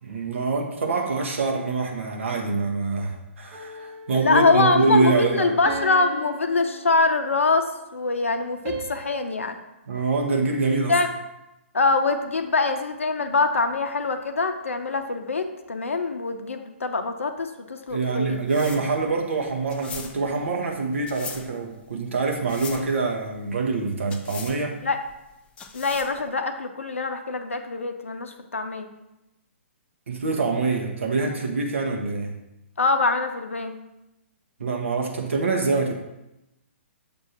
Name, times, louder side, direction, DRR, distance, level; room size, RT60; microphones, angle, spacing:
voice 1, 0.0-5.6 9.9-11.0 17.9-24.8 30.1-32.3 34.6-35.9, right 4 dB, 65° right, 1 dB, 0.8 m, -25 dB
sound 1, 3.5-4.5 5.7-7.5 8.6-9.1, right 3 dB, 25° right, 1.0 m, -37 dB
voice 2, 4.1-9.6 10.9-11.1 11.7-18.4 24.8-25.0 25.7-28.9 32.8-33.8, left 3 dB, 75° left, 7 dB, 0.6 m, -24 dB
sound 2, 17.9-26.3, left 6 dB, 15° left, 0.4 m, -41 dB
6.9 x 2.6 x 5.6 m, 0.93 s
figure-of-eight pair, 125°, 7 cm